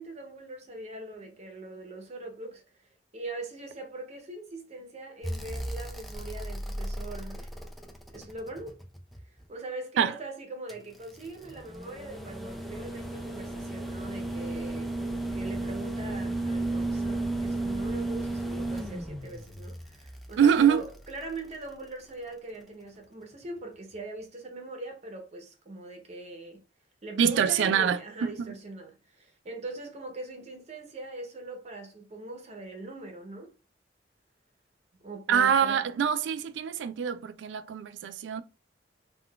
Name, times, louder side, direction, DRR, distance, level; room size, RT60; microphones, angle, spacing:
voice 1, 0.0-2.9 3.1-7.5 8.1-8.8 9.5-15.0 15.3-26.6 27.0-33.5 35.0-35.8, right 2 dB, 40° right, 0.7 m, -41 dB
sound 1, 5.2-9.4 10.7-21.9 23.4-23.5, right 2 dB, ahead, 0.3 m, -35 dB
voice 2, 20.4-20.9 27.2-28.5 35.3-38.4, right 8 dB, 80° right, 0.3 m, -25 dB
3.7 x 2.3 x 2.3 m
head